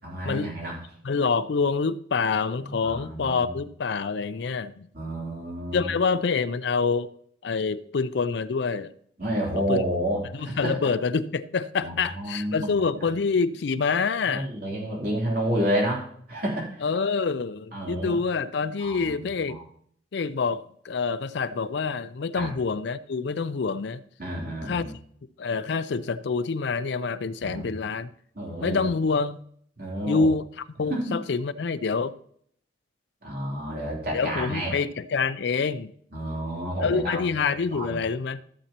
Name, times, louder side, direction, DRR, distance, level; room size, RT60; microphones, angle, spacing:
voice 1, 0.0-0.8 2.6-3.4 4.9-5.9 9.2-10.8 11.8-12.7 14.3-16.8 17.7-18.2 18.8-19.6 22.3-22.5 24.2-24.9 27.4-27.7 28.3-28.8 29.8-30.3 30.9-31.2 33.2-34.8 36.1-37.2 37.7-38.0, equal, 50° right, 3.1 m, -30 dB
voice 2, 1.0-4.9 5.7-7.1 7.4-8.9 9.7-9.8 10.3-14.5 16.8-19.6 20.1-24.0 24.6-24.9 25.4-28.1 28.6-29.4 30.1-32.1 34.1-35.9 36.8-38.4, left 4 dB, 60° left, 0.4 m, -26 dB
14.0 x 7.2 x 2.9 m
head